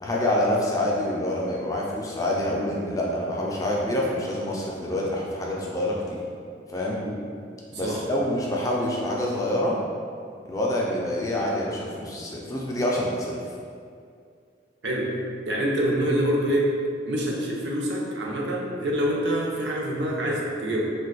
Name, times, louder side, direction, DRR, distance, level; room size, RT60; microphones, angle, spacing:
voice 1, 0.0-6.2 6.7-7.0 7.7-9.8 10.4-13.3, left 1 dB, 20° left, -3 dB, 0.3 m, -26 dB
voice 2, 15.5-16.7 17.1-20.8, right 1 dB, 75° right, -3 dB, 0.6 m, -26 dB
2.5 x 2.3 x 3.9 m, 2.3 s
head